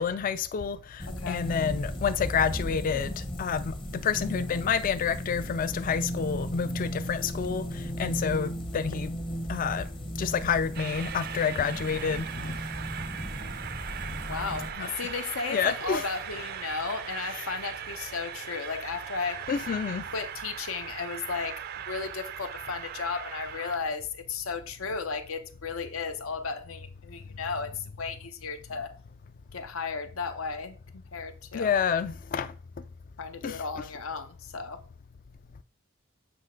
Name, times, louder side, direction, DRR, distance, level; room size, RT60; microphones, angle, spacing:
voice 1, 0.0-9.2 9.5-9.9 10.2-12.6 14.8-14.9 15.5-16.0 17.3-17.4 19.5-20.0 31.5-32.5 33.4-33.6, left 7 dB, 40° left, 0.3 m, -29 dB
sound 1, 1.0-14.7, equal, 25° left, 0.7 m, -35 dB
Train, 10.7-23.8, right 9 dB, 45° right, 0.4 m, -39 dB
voice 2, 14.2-19.4 20.1-21.6 21.9-28.9 29.5-31.7 33.2-34.8, left 5 dB, 80° left, 0.8 m, -34 dB
7.8 x 3.1 x 5.0 m
head